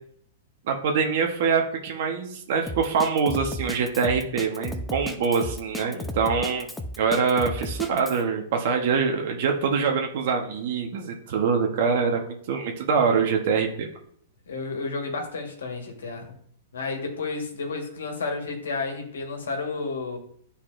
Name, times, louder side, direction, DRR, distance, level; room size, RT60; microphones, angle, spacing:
voice 1, 0.7-6.7 7.0-13.9, right 5 dB, 60° right, 2 dB, 1.1 m, -24 dB
Drum kit, 2.7-8.2, left 1 dB, 5° left, 0.6 m, -34 dB
voice 2, 14.5-16.2 16.7-20.2, left 3 dB, 90° left, 2 dB, 1.5 m, -31 dB
9.8 x 4.2 x 2.6 m, 0.62 s
hypercardioid pair, 130°, 0 cm